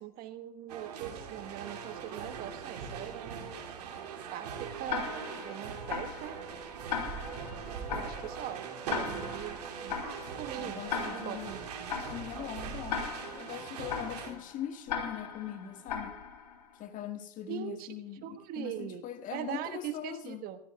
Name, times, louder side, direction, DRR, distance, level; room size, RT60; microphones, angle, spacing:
voice 1, 0.0-3.5 4.3-5.1 5.4-6.4 7.9-10.0 10.3-11.9 17.5-17.9 18.2-19.0 19.3-20.6, right 11 dB, 45° right, 1.4 m, -41 dB
sound 1, 0.7-14.3, right 7 dB, 75° right, 2.8 m, -41 dB
Tick-tock, 4.9-16.7, left 7 dB, 80° left, 3.3 m, -39 dB
sound 2, 5.0-11.0, right 5 dB, 5° left, 5.3 m, -51 dB
voice 2, 10.5-11.5 12.0-13.1 13.4-16.1 16.8-20.5, left 10 dB, 40° left, 1.7 m, -41 dB
22.5 x 15.5 x 2.3 m
hypercardioid pair, 95°, 21 cm